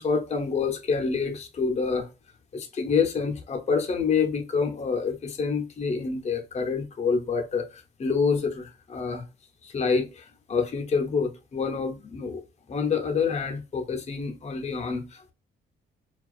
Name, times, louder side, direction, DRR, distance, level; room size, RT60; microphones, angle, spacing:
voice 1, 0.0-2.1 2.5-9.3 9.6-12.4 12.7-15.3, left 5 dB, 35° left, 0.6 m, -27 dB
2.3 x 2.3 x 2.3 m
cardioid pair, 90°, 20 cm